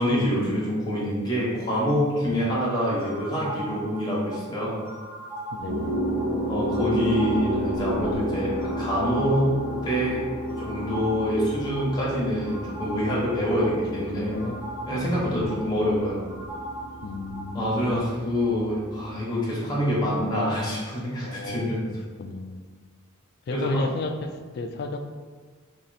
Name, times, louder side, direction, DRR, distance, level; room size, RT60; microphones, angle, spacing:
voice 1, 0.0-4.8 6.5-10.2 10.6-14.3 14.9-16.3 17.5-21.8 23.5-23.8, equal, 20° left, -7 dB, 1.0 m, -26 dB
sound 1, 3.0-17.8, right 1 dB, 10° right, 0.5 m, -40 dB
voice 2, 5.5-6.0 13.6-14.6 15.0-16.0 17.0-18.0 21.2-22.6 23.5-25.0, left 3 dB, 45° left, 6 dB, 0.3 m, -35 dB
sound 2, 5.7-19.2, equal, 70° right, 1.2 m, -32 dB
3.2 x 2.8 x 4.0 m, 1.5 s
head